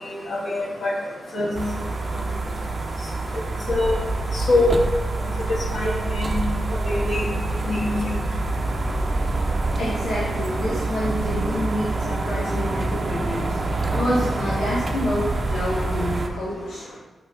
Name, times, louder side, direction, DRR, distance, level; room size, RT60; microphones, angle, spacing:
voice 1, 0.3-0.9 1.3-1.5 3.7-4.0 4.3-4.8 5.7-6.3 6.8-7.3 7.7-8.0, left 2 dB, 65° left, -5 dB, 1.6 m, -23 dB
sound 1, 1.5-16.3, right 2 dB, 45° right, 0.7 m, -26 dB
voice 2, 9.8-13.6 13.9-16.8, left 1 dB, 85° left, -11 dB, 1.8 m, -27 dB
5.4 x 4.7 x 3.9 m, 1.2 s
supercardioid pair, 50°, 0 cm